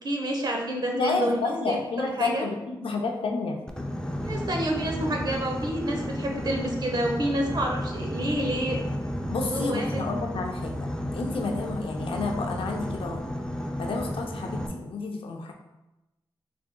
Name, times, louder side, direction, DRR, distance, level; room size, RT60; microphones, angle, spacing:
voice 1, 0.0-1.8 2.0-2.4 4.2-8.8 9.4-9.9, right 1 dB, 50° right, 1 dB, 0.8 m, -29 dB
voice 2, 0.9-3.6 9.3-13.2 13.8-15.5, left 3 dB, 85° left, 2 dB, 0.5 m, -30 dB
Boat Water vehicle, 3.7-14.7, equal, 10° left, 0.5 m, -32 dB
4.6 x 3.4 x 2.2 m, 0.97 s
cardioid pair, 65°, 9 cm